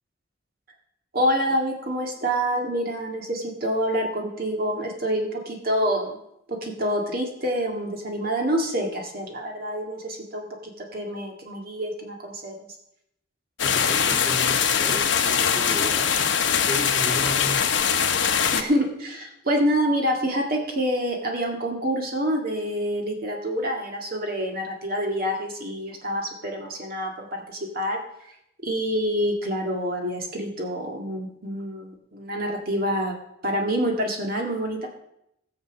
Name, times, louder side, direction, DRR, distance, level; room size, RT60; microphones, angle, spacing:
voice 1, 1.1-6.2 6.5-12.6 18.5-28.0 28.6-33.2 33.4-34.9, equal, 50° right, 1 dB, 1.9 m, -27 dB
sound 1, 13.6-18.6, left 7 dB, 70° left, 1.1 m, -22 dB
voice 2, 13.6-17.7, equal, 5° right, -1 dB, 1.8 m, -34 dB
16.5 x 7.2 x 6.1 m, 0.79 s
head